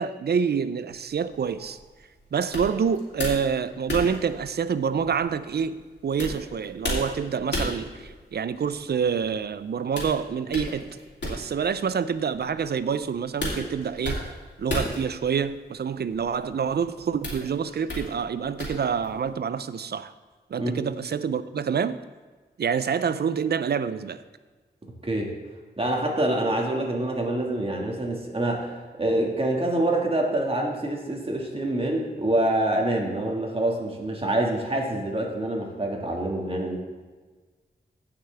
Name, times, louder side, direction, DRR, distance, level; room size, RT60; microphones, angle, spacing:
voice 1, 0.0-1.8 2.3-10.9 11.2-20.1 20.5-22.0 22.6-24.2, right 6 dB, 70° right, 14 dB, 0.4 m, -27 dB
sound 1, 0.9-19.3, left 1 dB, 85° left, 2.8 m, -36 dB
voice 2, 25.8-36.8, right 1 dB, 30° right, 0 dB, 1.8 m, -26 dB
16.0 x 5.8 x 3.4 m, 1.4 s
wide cardioid pair, 85°, 18 cm